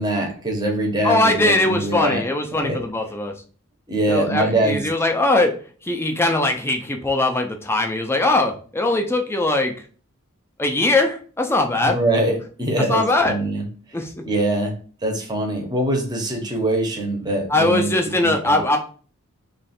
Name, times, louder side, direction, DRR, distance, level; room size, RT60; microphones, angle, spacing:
voice 1, 0.0-2.2 2.5-2.8 3.9-4.9 11.8-13.6 14.2-14.7 15.0-17.9 18.2-18.6, right 1 dB, 20° right, 2 dB, 0.7 m, -23 dB
voice 2, 1.0-3.3 4.1-5.5 5.8-9.7 10.6-12.0 12.9-13.4 13.9-14.2 17.5-18.8, left 2 dB, 10° left, 4 dB, 0.5 m, -20 dB
3.2 x 2.4 x 4.2 m, 0.41 s
head